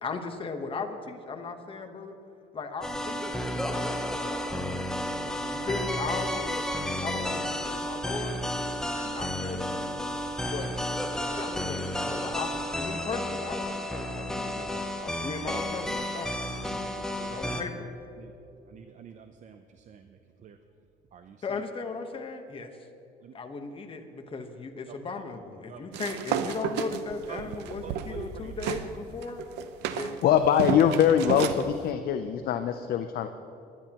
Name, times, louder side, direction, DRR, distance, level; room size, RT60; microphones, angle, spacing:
voice 1, 0.0-2.1 2.5-4.7 5.5-6.6 7.0-8.4 8.9-10.0 10.5-10.7 11.3-16.3 17.2-17.9 21.4-22.7 23.3-29.5 29.9-30.1, left 4 dB, 30° left, 5 dB, 1.1 m, -37 dB
sound 1, 2.8-17.6, left 1 dB, 5° left, 0.9 m, -32 dB
voice 2, 16.6-17.4 18.2-18.3 18.7-20.6 21.1-21.6 23.2-23.3 25.2-25.3 25.7-25.8 27.3-27.5 27.8-28.5, right 7 dB, 45° right, 8 dB, 0.6 m, -47 dB
sound 2, 25.9-28.9 29.2-31.6, right 9 dB, 90° right, 0.7 m, -32 dB
voice 3, 30.2-33.3, left 9 dB, 65° left, 8 dB, 0.5 m, -23 dB
20.5 x 10.5 x 3.0 m, 2.7 s
cardioid pair, 110°, 17 cm